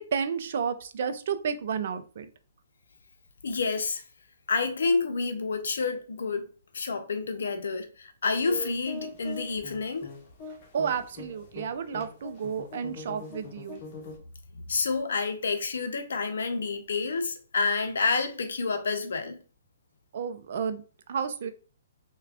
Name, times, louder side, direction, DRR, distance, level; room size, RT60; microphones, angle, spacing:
voice 1, 0.0-2.3 10.7-13.8 20.1-20.8 21.1-21.5, right 6 dB, 60° right, 0.5 m, -31 dB
voice 2, 3.4-4.0 4.5-6.5 6.7-10.1 14.5-19.4, left 4 dB, 75° left, 0.6 m, -29 dB
sound 1, 8.5-14.2, left 2 dB, 40° left, 0.8 m, -42 dB
3.3 x 2.3 x 3.5 m
hypercardioid pair, 135°, 0 cm